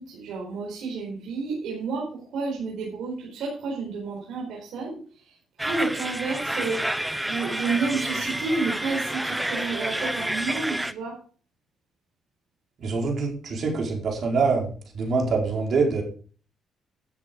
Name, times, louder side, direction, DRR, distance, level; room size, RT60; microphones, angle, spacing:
voice 1, 0.0-11.2, right 4 dB, 75° right, -2 dB, 4.5 m, -31 dB
sound 1, 5.6-10.9, right 1 dB, 5° right, 0.7 m, -29 dB
voice 2, 12.8-14.7 14.9-16.0, right 4 dB, 60° right, 1 dB, 4.6 m, -24 dB
12.5 x 7.7 x 5.3 m, 0.42 s
cardioid pair, 90°, 0 cm